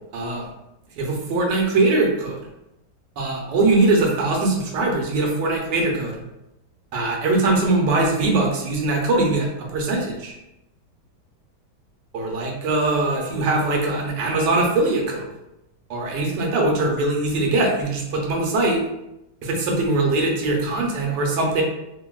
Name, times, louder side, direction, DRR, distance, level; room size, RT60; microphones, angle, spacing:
voice 1, 0.1-0.5 1.0-2.4 3.2-6.2 6.9-10.3 12.1-15.3 15.9-18.8 19.4-21.6, right 2 dB, 90° right, 0 dB, 1.3 m, -21 dB
2.9 x 2.6 x 2.2 m, 0.89 s
omnidirectional pair, 1.8 m